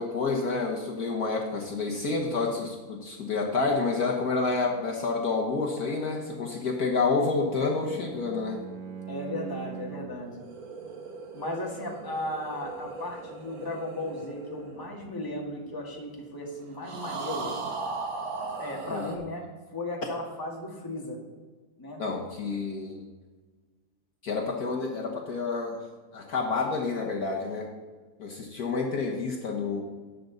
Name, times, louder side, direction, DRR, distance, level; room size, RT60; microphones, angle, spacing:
voice 1, 0.0-8.6 18.9-19.1 22.0-23.1 24.2-25.8 26.1-27.7 28.2-29.8, left 4 dB, 55° left, -1 dB, 1.6 m, -29 dB
Bowed string instrument, 7.1-10.3, right 8 dB, 65° right, 1.6 m, -42 dB
voice 2, 9.1-10.4 11.3-17.5 18.4-19.5 19.7-21.2 21.8-22.0, left 1 dB, 10° left, -2 dB, 1.8 m, -36 dB
sound 1, 10.1-15.7 16.8-19.2, right 3 dB, 90° right, 2.1 m, -38 dB
18.5 x 7.0 x 4.0 m, 1.4 s
omnidirectional pair, 2.0 m